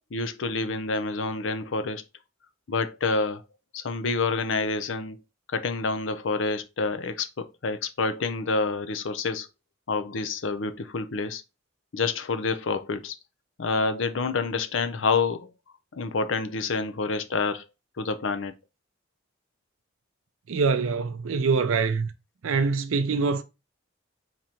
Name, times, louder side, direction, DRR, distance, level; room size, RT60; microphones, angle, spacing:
voice 1, 0.1-2.0 2.7-3.4 3.7-5.2 5.5-9.5 9.9-11.4 11.9-13.2 13.6-15.5 15.9-17.7 18.0-18.5, left 4 dB, 65° left, 0.5 m, -28 dB
voice 2, 20.5-22.1 22.4-23.4, right 4 dB, 85° right, 0.5 m, -24 dB
3.8 x 3.0 x 4.2 m
head